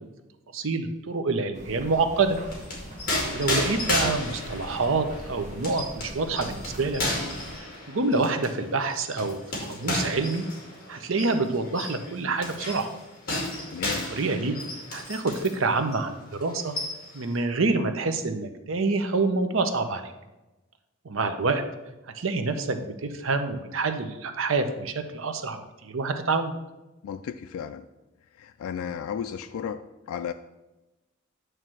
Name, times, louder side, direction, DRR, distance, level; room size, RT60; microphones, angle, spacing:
voice 1, 0.5-2.4 3.3-7.0 7.9-10.5 10.9-12.9 14.1-14.6 14.9-16.7 17.1-20.1 21.0-21.6 22.1-26.5, right 3 dB, 70° right, 8 dB, 0.7 m, -27 dB
sound 1, 1.5-7.6, right 1 dB, 35° right, 1.3 m, -42 dB
sound 2, 2.3-15.6 15.9-16.1 16.4-17.3, left 1 dB, 40° left, 2.4 m, -33 dB
voice 2, 13.7-14.1 27.0-27.9 28.4-30.3, left 8 dB, 85° left, 8 dB, 0.3 m, -34 dB
9.1 x 3.2 x 6.2 m, 1.1 s
head